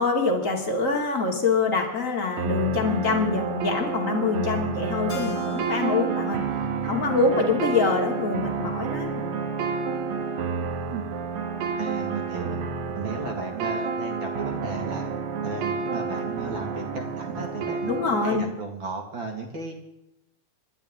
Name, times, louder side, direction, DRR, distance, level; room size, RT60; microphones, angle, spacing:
voice 1, 0.0-6.4 6.8-9.3 17.9-18.4, left 4 dB, 25° left, 1 dB, 2.6 m, -25 dB
sound 1, 2.4-18.4, right 5 dB, 65° right, 2.6 m, -30 dB
Keyboard (musical), 5.1-8.3, left 3 dB, 55° left, 2.8 m, -42 dB
voice 2, 11.8-12.6 12.9-15.1 15.4-18.0 18.2-19.8, right 3 dB, 40° right, 2 dB, 2.5 m, -34 dB
27.5 x 12.0 x 3.7 m, 0.89 s
omnidirectional pair, 3.5 m